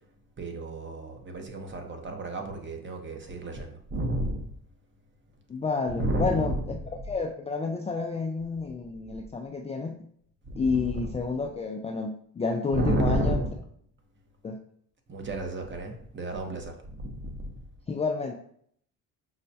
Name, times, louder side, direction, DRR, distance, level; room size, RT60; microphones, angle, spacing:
voice 1, 0.4-4.5 5.9-7.1 10.5-11.1 12.7-13.6 15.1-17.6, right 1 dB, 30° right, 0.8 m, -31 dB
voice 2, 5.5-6.8 7.1-10.1 10.6-13.4 14.4-14.6 17.9-18.3, left 4 dB, 20° left, 0.3 m, -30 dB
5.5 x 2.1 x 2.7 m
supercardioid pair, 75°, 36 cm